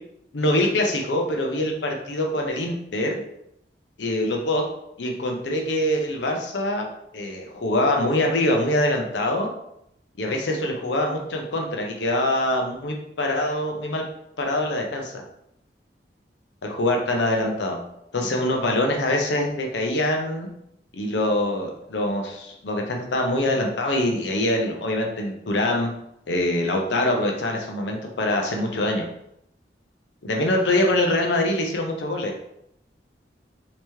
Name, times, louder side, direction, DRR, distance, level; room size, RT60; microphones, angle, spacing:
voice 1, 0.3-3.2 4.0-4.6 5.0-6.9 7.1-9.5 10.2-14.0 14.4-15.2 16.6-17.8 18.1-20.5 20.9-25.9 26.3-29.1 30.2-32.3, left 1 dB, 85° left, 2 dB, 0.6 m, -24 dB
3.4 x 2.9 x 3.1 m, 0.77 s
head